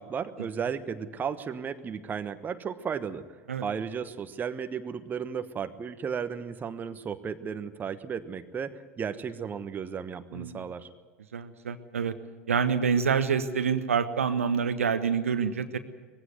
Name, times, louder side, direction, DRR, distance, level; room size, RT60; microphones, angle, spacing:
voice 1, 0.0-3.3 3.6-10.9, right 7 dB, 25° right, 10 dB, 1.2 m, -34 dB
voice 2, 10.3-10.6 11.3-12.1 12.5-15.8, right 6 dB, 75° right, 11 dB, 1.2 m, -27 dB
20.5 x 16.0 x 9.5 m, 1.4 s
figure-of-eight pair, 80°, 7 cm